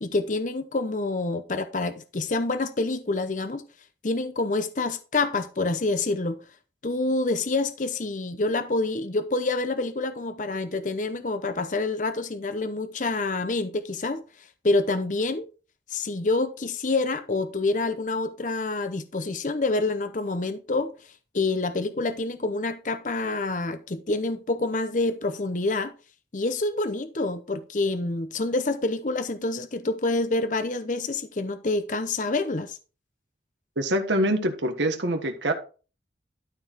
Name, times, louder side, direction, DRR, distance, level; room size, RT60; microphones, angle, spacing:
voice 1, 0.0-3.7 4.0-6.4 6.8-14.2 14.6-15.5 15.9-25.9 26.3-32.8, left 2 dB, 45° left, 0.7 m, -27 dB
voice 2, 33.8-35.5, right 1 dB, 85° right, 1.5 m, -25 dB
12.5 x 4.6 x 4.6 m
head